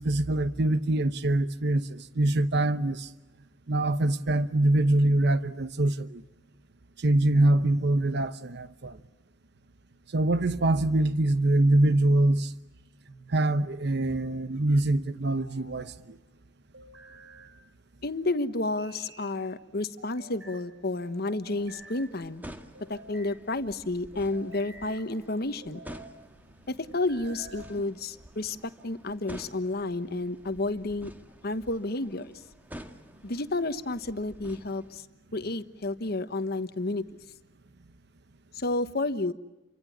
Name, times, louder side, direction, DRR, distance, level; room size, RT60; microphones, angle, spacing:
voice 1, 0.0-3.1 3.7-6.2 7.0-9.0 10.1-12.5 13.3-16.2, right 1 dB, 65° right, 0.9 m, -24 dB
sound 1, 13.1-13.8 15.1-15.9 16.7-17.5 18.6-19.4 20.0-20.6 21.2-22.1 22.7-23.4 24.1-25.1 25.6-26.1 26.9-27.7, right 2 dB, 80° right, 5.7 m, -50 dB
voice 2, 18.0-22.4 22.9-25.8 26.7-31.1 31.4-32.3 33.2-35.0 35.3-37.0 38.5-39.3, left 2 dB, 55° left, 1.3 m, -31 dB
sound 2, 21.6-35.0, equal, 10° right, 1.7 m, -49 dB
29.0 x 25.0 x 7.2 m
head